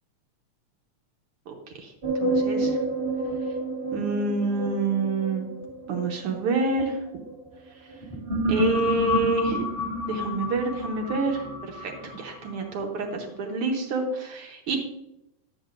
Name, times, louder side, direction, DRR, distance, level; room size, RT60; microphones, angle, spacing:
voice 1, 1.5-2.8 3.9-5.5 5.9-7.0 8.5-9.7 10.1-14.8, right 3 dB, 65° right, 2 dB, 1.5 m, -28 dB
sound 1, 2.0-7.3 7.9-12.9, equal, 20° right, 1.5 m, -29 dB
11.5 x 8.1 x 2.5 m, 0.85 s
omnidirectional pair, 3.3 m